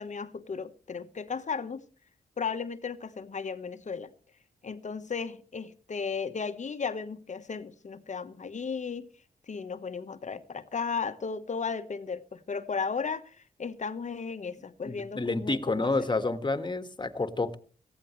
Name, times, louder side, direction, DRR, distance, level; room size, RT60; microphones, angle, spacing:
voice 1, 0.0-1.8 2.4-4.1 4.6-9.1 9.5-15.9, left 5 dB, 45° left, 1.3 m, -35 dB
voice 2, 14.9-17.6, left 3 dB, 30° left, 1.8 m, -29 dB
18.0 x 14.5 x 3.2 m
supercardioid pair, 45°, 16 cm